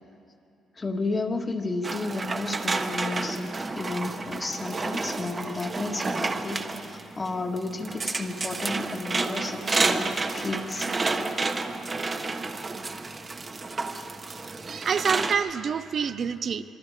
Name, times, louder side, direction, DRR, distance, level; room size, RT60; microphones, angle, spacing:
voice 1, 0.8-10.1 10.3-10.9, left 3 dB, 30° left, 3 dB, 1.9 m, -32 dB
sound 1, 1.8-15.3, right 3 dB, 30° right, 1.4 m, -30 dB
voice 2, 14.4-16.6, right 6 dB, 55° right, 12 dB, 0.8 m, -27 dB
26.0 x 22.5 x 5.0 m, 2.5 s
cardioid pair, 90°, 0 cm